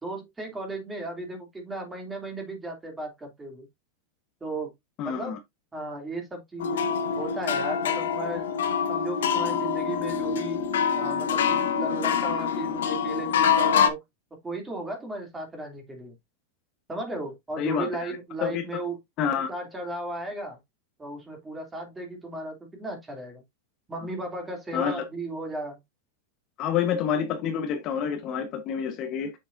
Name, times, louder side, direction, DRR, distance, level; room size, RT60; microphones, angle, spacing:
voice 1, 0.0-3.7 4.4-4.7 5.0-5.4 5.7-6.9 7.2-8.5 8.9-10.6 10.9-14.0 14.4-16.1 16.9-19.0 19.5-20.6 21.0-23.4 23.9-25.8, right 2 dB, 10° right, 2.9 m, -35 dB
voice 2, 5.0-5.4 17.6-18.6 19.2-19.5 24.7-25.0 26.6-29.3, left 7 dB, 35° left, 1.2 m, -28 dB
sound 1, 6.6-13.9, left 7 dB, 90° left, 1.3 m, -25 dB
7.2 x 6.7 x 2.6 m
supercardioid pair, 145°, 0 cm